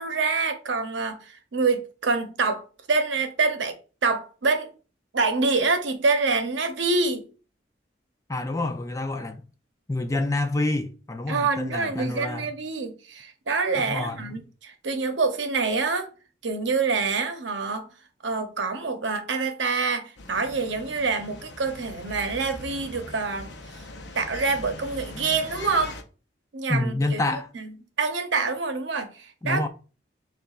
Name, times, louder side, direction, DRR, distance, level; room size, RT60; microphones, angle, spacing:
voice 1, 0.0-2.6 2.9-3.8 4.0-4.7 5.1-7.3 11.3-16.1 16.4-17.9 18.2-23.8 24.1-26.0 26.5-29.7, right 4 dB, 90° right, 0.7 m, -26 dB
voice 2, 8.3-9.4 9.9-12.5 13.8-14.4 26.7-27.5 29.4-29.7, left 2 dB, 15° left, 0.4 m, -28 dB
sound 1, 20.2-26.0, left 2 dB, 75° left, 0.7 m, -41 dB
6.6 x 2.4 x 2.4 m
head